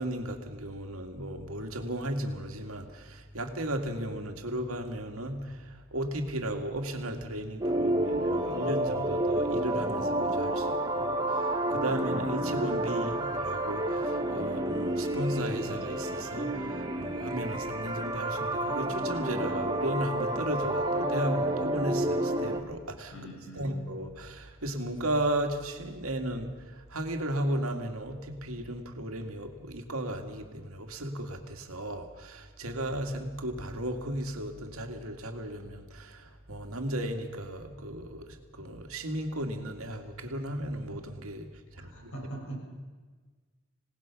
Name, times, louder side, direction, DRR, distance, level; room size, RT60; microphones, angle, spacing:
voice 1, 0.0-23.1 23.6-41.5 41.8-42.1, right 1 dB, 90° right, 5 dB, 2.2 m, -35 dB
sound 1, 7.6-22.6, right 1 dB, 20° right, 1.5 m, -30 dB
voice 2, 23.1-23.9 41.7-42.6, right 1 dB, 80° left, -1 dB, 7.2 m, -42 dB
26.5 x 18.0 x 6.1 m, 1.4 s
head